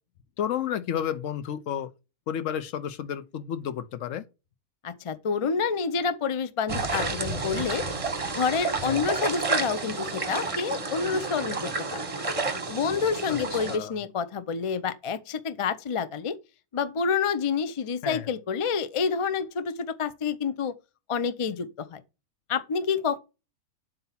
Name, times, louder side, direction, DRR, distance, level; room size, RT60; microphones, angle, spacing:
voice 1, 0.4-1.9 2.3-4.2 8.8-9.1 13.3-13.9 18.0-18.3, left 9 dB, 70° left, 1.0 m, -31 dB
voice 2, 4.8-7.8 8.4-12.0 12.7-16.3 16.7-20.7 21.1-22.0 22.5-23.2, left 6 dB, 50° left, 0.4 m, -28 dB
sound 1, 6.7-13.8, right 3 dB, 30° right, 0.9 m, -30 dB
7.7 x 2.9 x 5.6 m
omnidirectional pair, 1.4 m